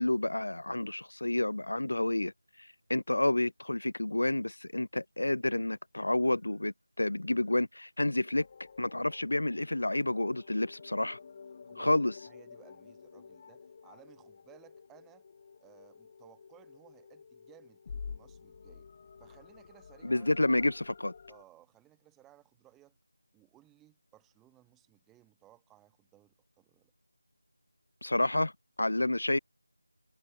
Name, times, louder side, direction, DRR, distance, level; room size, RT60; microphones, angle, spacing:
voice 1, 0.0-2.3 2.6-8.5 8.8-11.2 11.8-12.1 20.0-21.1 28.0-28.5 28.8-29.4, left 1 dB, 70° left, 0.4 m, -29 dB
sound 1, 8.4-21.4, left 5 dB, 25° left, 1.3 m, -50 dB
voice 2, 11.7-12.0 12.3-15.3 15.6-18.9 19.2-20.3 21.3-23.0 23.3-26.9, right 15 dB, 5° right, 2.5 m, -61 dB
figure-of-eight pair, 170°, 0 cm